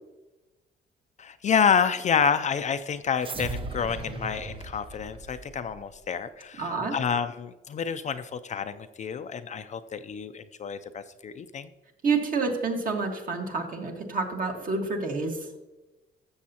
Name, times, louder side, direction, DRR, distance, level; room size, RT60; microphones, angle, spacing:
voice 1, 1.2-11.7, left 7 dB, 35° left, 10 dB, 0.4 m, -28 dB
sound 1, 3.2-5.9, right 3 dB, 25° right, 0.8 m, -38 dB
voice 2, 6.6-7.0 12.0-15.5, right 4 dB, 45° right, 2 dB, 1.7 m, -28 dB
13.5 x 7.1 x 2.9 m, 1.1 s
cardioid pair, 125°, 20 cm